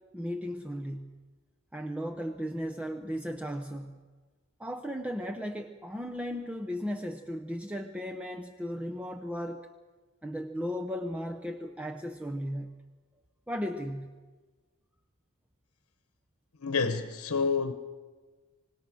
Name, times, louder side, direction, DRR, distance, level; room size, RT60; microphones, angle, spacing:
voice 1, 0.1-1.1 1.7-4.0 4.6-9.7 10.2-12.7 13.5-14.1, equal, 5° right, 0.8 m, -36 dB
voice 2, 16.6-17.7, left 5 dB, 85° left, 1.0 m, -28 dB
26.0 x 19.0 x 6.3 m
head